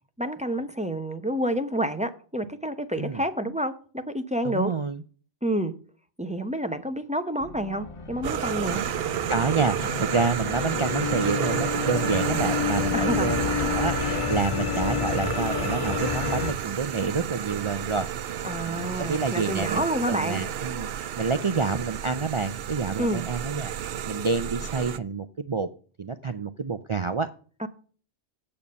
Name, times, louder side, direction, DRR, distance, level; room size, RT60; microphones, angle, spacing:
voice 1, 0.2-4.7 5.4-5.7 6.2-8.8 12.9-13.7 18.4-20.4 23.0-23.2 27.6-27.7, equal, 10° right, 9 dB, 0.7 m, -29 dB
voice 2, 4.4-5.0 9.3-18.4 18.7-25.7 26.0-27.3, right 4 dB, 45° right, 10 dB, 0.4 m, -28 dB
sound 1, 7.4-16.5, left 6 dB, 35° left, 0.5 m, -30 dB
sound 2, 8.2-25.0, right 10 dB, 65° right, 0.8 m, -31 dB
8.7 x 7.1 x 5.3 m, 0.41 s
omnidirectional pair, 1.1 m